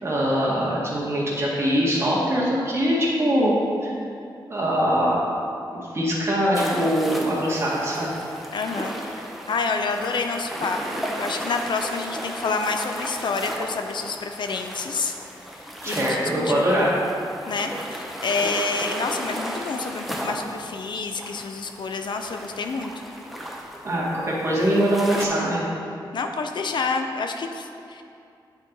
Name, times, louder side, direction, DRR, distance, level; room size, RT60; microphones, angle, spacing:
voice 1, 0.0-3.6 3.8-3.9 4.5-5.2 5.9-8.1 15.8-16.9 23.8-25.7, equal, 30° right, -6 dB, 1.7 m, -22 dB
sound 1, 6.5-25.3, equal, ahead, 0.6 m, -35 dB
voice 2, 8.5-9.0 9.5-15.1 15.5-16.9 17.5-22.9 26.1-28.0, left 4 dB, 65° left, 5 dB, 0.5 m, -28 dB
9.2 x 4.4 x 3.9 m, 2.5 s
wide cardioid pair, 125°, 8 cm